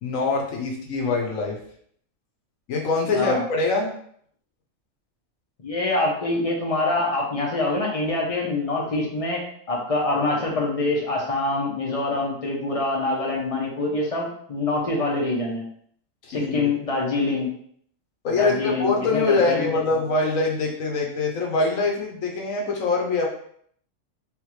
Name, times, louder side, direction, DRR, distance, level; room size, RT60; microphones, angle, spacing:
voice 1, 0.0-1.6 2.7-3.9 16.2-16.7 18.2-23.3, left 3 dB, 85° left, 0 dB, 1.3 m, -24 dB
voice 2, 3.1-3.4 5.6-15.7 16.3-17.5 18.4-19.7, left 2 dB, 35° left, -1 dB, 0.8 m, -25 dB
3.5 x 3.5 x 3.2 m, 0.63 s
omnidirectional pair, 1.3 m